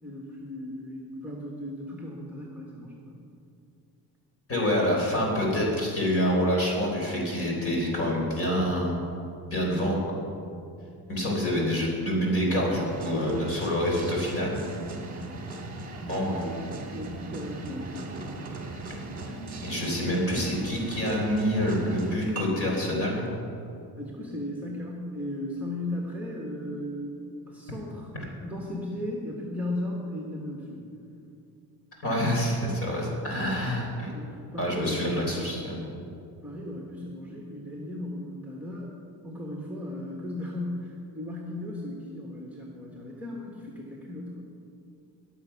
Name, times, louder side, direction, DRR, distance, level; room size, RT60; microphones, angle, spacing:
voice 1, 0.0-3.2 16.2-18.3 24.0-27.2 27.5-30.8 34.1-35.5 36.4-38.9 39.2-44.4, left 1 dB, 5° right, -2 dB, 1.4 m, -36 dB
voice 2, 4.5-8.9 9.4-10.2 11.1-14.6 16.1-16.5 19.3-19.4 19.6-23.3 32.0-34.1 34.6-35.8, equal, 35° left, -2 dB, 3.9 m, -27 dB
sound 1, 12.7-22.4, right 2 dB, 20° right, 1.8 m, -38 dB
20.5 x 7.3 x 5.9 m, 2.6 s
cardioid pair, 160°, 38 cm